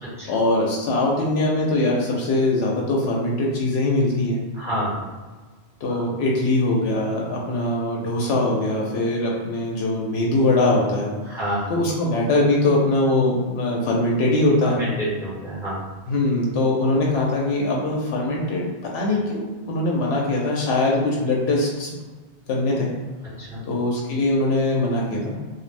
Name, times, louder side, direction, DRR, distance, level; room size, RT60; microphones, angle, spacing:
voice 1, 0.3-4.4 5.8-11.1 11.7-14.8 16.1-21.9 22.5-22.9 23.6-25.3, left 2 dB, 85° left, -2 dB, 0.8 m, -22 dB
voice 2, 4.5-5.0 5.9-6.0 11.3-11.7 14.6-15.8 23.4-23.6, equal, 5° right, -10 dB, 1.2 m, -28 dB
2.5 x 2.2 x 3.2 m, 1.3 s
omnidirectional pair, 1.1 m